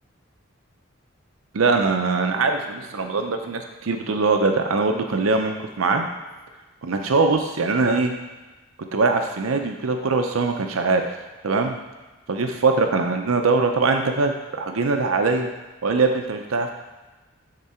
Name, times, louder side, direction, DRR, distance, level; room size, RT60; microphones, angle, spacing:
voice 1, 1.5-6.1 6.8-8.1 8.9-11.1 11.4-11.7 12.3-15.5 15.8-16.7, right 3 dB, 90° right, 5 dB, 0.6 m, -22 dB
10.5 x 3.7 x 4.3 m, 1.2 s
head